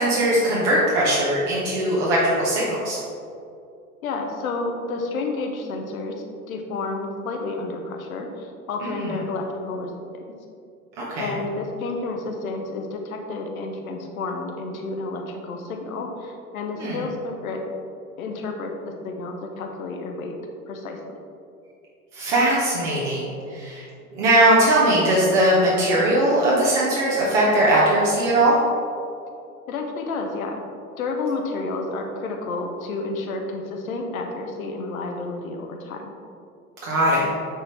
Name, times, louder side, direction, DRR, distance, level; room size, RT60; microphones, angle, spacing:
voice 1, 0.0-3.0 9.0-9.1 11.0-11.3 16.8-17.0 22.1-23.8 24.1-28.6 36.8-37.2, right 1 dB, 55° right, -6 dB, 1.5 m, -20 dB
voice 2, 4.0-6.1 6.5-10.2 11.2-17.6 18.2-20.3 20.7-21.2 29.7-30.6 31.0-36.0, left 3 dB, 70° left, 3 dB, 1.0 m, -30 dB
8.6 x 4.2 x 3.4 m, 2.5 s
figure-of-eight pair, 85°, 44 cm